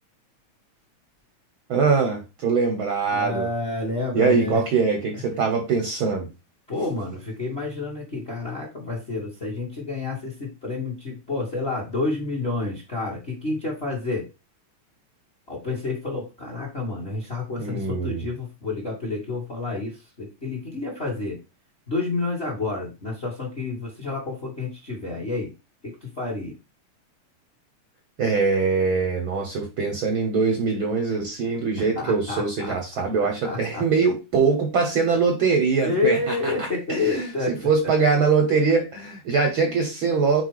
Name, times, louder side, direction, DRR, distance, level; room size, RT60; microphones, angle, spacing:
voice 1, 1.7-3.5 4.1-6.3 17.6-18.2 28.2-40.4, right 5 dB, 55° right, 1.5 m, -23 dB
voice 2, 3.1-4.6 6.7-14.3 15.5-21.4 21.9-25.5 25.8-26.5 31.8-32.8 33.4-33.8 35.8-37.6, left 3 dB, 25° left, 1.6 m, -29 dB
5.0 x 4.6 x 4.8 m
omnidirectional pair, 3.4 m